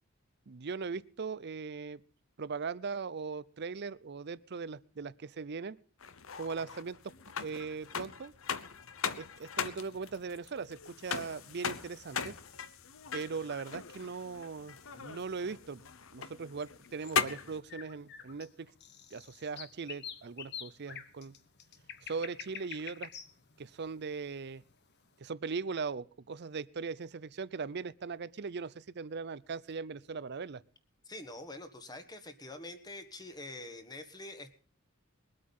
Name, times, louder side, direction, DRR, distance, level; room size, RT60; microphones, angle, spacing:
voice 1, 0.5-2.0 2.4-5.8 6.4-7.1 7.4-8.3 9.2-12.3 13.1-15.8 16.1-18.7 19.1-21.3 22.0-23.1 23.6-24.6 25.2-30.6, right 5 dB, 50° right, 19 dB, 0.6 m, -39 dB
sound 1, 6.0-17.6, left 6 dB, 70° left, 0.9 m, -39 dB
sound 2, 16.6-24.8, left 8 dB, 55° left, 1.2 m, -47 dB
voice 2, 31.0-34.5, left 2 dB, 20° left, 8 dB, 1.6 m, -45 dB
21.5 x 8.6 x 5.5 m, 0.41 s
head